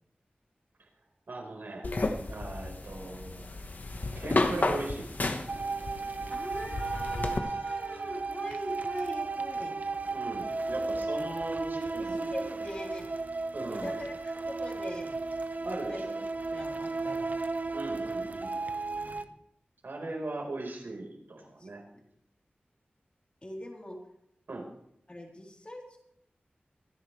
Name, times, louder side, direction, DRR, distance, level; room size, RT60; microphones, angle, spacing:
voice 1, 1.3-1.9 2.3-3.7 4.1-5.1 10.1-12.3 13.5-14.0 15.6-16.2 17.7-18.5 19.8-21.8 24.5-24.7, right 2 dB, 75° right, 1 dB, 4.4 m, -38 dB
sound 1, 1.8-7.4, left 2 dB, 55° left, 1.3 m, -32 dB
sound 2, 5.5-19.2, right 3 dB, 50° right, 0.8 m, -34 dB
voice 2, 6.3-9.8 11.9-13.1 13.7-15.2 15.6-16.0 16.5-17.3 19.0-19.3 21.6-21.7 21.9-22.0 23.4-24.0 25.1-26.0, left 1 dB, 30° left, -1 dB, 3.8 m, -41 dB
25.0 x 10.5 x 3.3 m, 0.74 s
wide cardioid pair, 75°, 4 cm